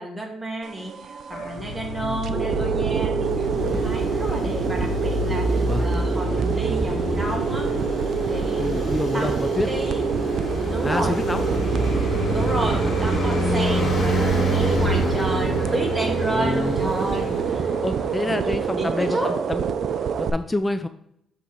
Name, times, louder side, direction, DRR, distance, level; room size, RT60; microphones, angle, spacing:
voice 1, 0.0-7.7 8.2-10.0 10.7-11.2 11.4-17.7 18.2-19.3, right 1 dB, 10° right, 1 dB, 1.4 m, -31 dB
sound 1, 0.6-20.3, right 7 dB, 65° right, 0.4 m, -26 dB
sound 2, 1.3-13.2, left 1 dB, 70° left, 1.9 m, -35 dB
voice 2, 2.0-2.4 5.6-5.9 8.6-9.7 10.8-11.5 13.6-14.2 16.3-17.3 17.8-19.6 20.0-20.9, left 2 dB, 15° left, 10 dB, 0.3 m, -28 dB
Traffic noise roadway noise, 3.2-18.7, equal, 45° left, 2.0 m, -27 dB
7.1 x 3.7 x 4.4 m, 0.75 s
cardioid pair, 90°, 0 cm